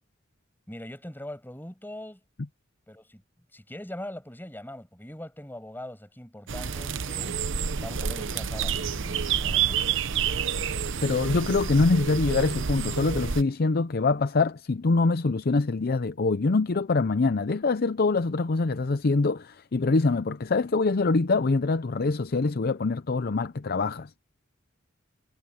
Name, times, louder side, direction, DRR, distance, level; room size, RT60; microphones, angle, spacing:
voice 1, 0.7-2.2 2.9-3.2 3.5-7.4 7.8-9.8, left 1 dB, 10° left, 7.1 m, -41 dB
sound 1, 6.5-13.4, right 7 dB, 65° right, 0.8 m, -29 dB
voice 2, 11.0-24.1, left 3 dB, 50° left, 0.6 m, -24 dB
head